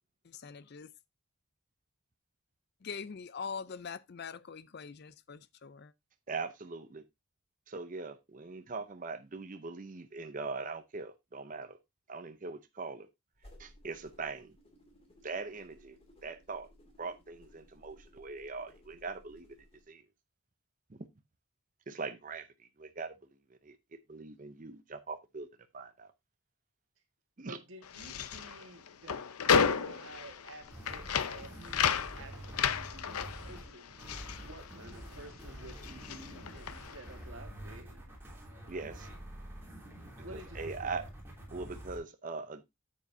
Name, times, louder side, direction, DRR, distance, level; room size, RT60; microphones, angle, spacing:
voice 1, 0.2-0.9 2.8-5.9, left 5 dB, 45° left, 0.5 m, -43 dB
voice 2, 6.3-7.0 7.7-11.8 12.1-13.1 13.6-14.5 15.2-16.0 16.2-16.7 17.0-19.5 19.9-20.0 20.9-21.0 21.9-22.5 22.8-23.2 23.5-23.8 24.1-25.5 25.7-26.1 27.4-27.6 38.7-39.1 40.3-41.0 41.5-42.6, right 4 dB, 35° right, 0.6 m, -41 dB
sound 1, 13.3-19.8, left 1 dB, 25° left, 2.4 m, -60 dB
voice 3, 27.4-33.9 34.4-38.1 40.2-41.1, right 2 dB, 60° right, 1.7 m, -51 dB
sound 2, 27.8-35.3 35.6-37.1, left 6 dB, 85° left, 0.7 m, -33 dB
sound 3, 30.6-42.0, right 1 dB, 10° right, 3.0 m, -47 dB
9.1 x 7.5 x 2.7 m
head